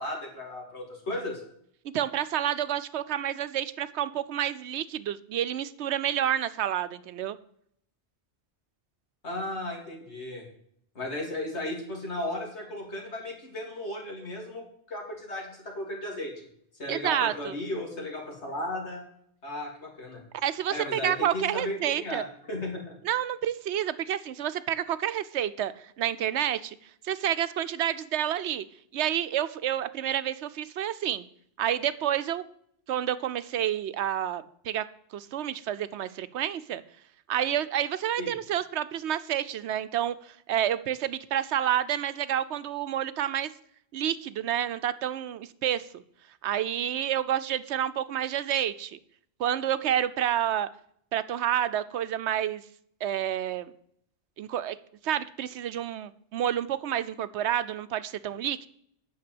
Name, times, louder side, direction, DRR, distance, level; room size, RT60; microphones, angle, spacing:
voice 1, 0.0-1.4 9.2-10.4 11.0-16.5 16.8-19.0 19.4-20.2 20.7-23.0 38.2-38.3, left 1 dB, 80° left, -1 dB, 3.5 m, -35 dB
voice 2, 1.9-7.4 16.9-17.5 20.4-22.3 23.0-26.8 27.0-28.7 28.9-31.2 31.6-32.4 32.9-34.8 35.1-36.8 37.3-43.5 43.9-46.0 46.4-49.0 49.4-50.7 51.1-52.6 53.0-53.7 54.4-54.8 55.0-58.7, right 10 dB, 85° right, 14 dB, 1.0 m, -29 dB
9.5 x 6.5 x 7.8 m, 0.67 s
omnidirectional pair, 1.1 m